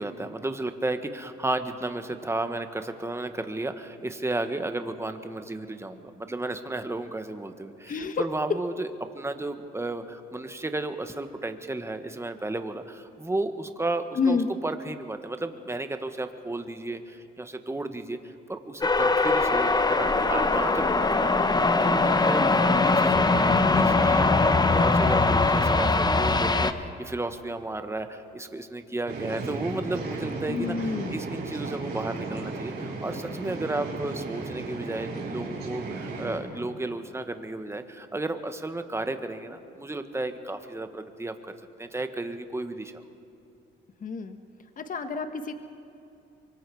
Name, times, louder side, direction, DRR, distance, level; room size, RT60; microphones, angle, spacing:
voice 1, 0.0-41.5 41.8-43.0, right 2 dB, 15° right, 8 dB, 1.4 m, -33 dB
voice 2, 7.9-8.3 14.1-14.5 20.3-20.6 30.5-31.2 44.0-44.4 44.8-45.5, left 4 dB, 45° left, 8 dB, 1.2 m, -29 dB
sound 1, 18.8-26.7, left 3 dB, 20° left, 0.9 m, -21 dB
sound 2, 29.1-36.4, right 3 dB, 55° right, 5.2 m, -35 dB
24.0 x 23.5 x 4.8 m, 2.7 s
cardioid pair, 90°, 20 cm